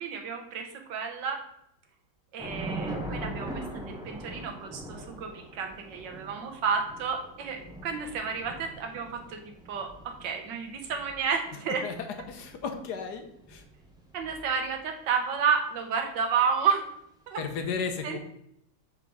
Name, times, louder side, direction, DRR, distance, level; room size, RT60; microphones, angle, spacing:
voice 1, 0.0-1.4 2.3-4.8 5.1-9.4 9.7-9.9 10.2-11.8 14.1-16.9 17.3-17.4 18.0-18.2, right 6 dB, 75° right, 3 dB, 1.6 m, -31 dB
Thunder / Rain, 2.4-14.9, right 1 dB, 5° right, 0.6 m, -42 dB
voice 2, 12.3-13.6 17.4-18.2, left 5 dB, 70° left, 5 dB, 1.3 m, -34 dB
4.9 x 4.5 x 5.4 m, 0.74 s
omnidirectional pair, 2.0 m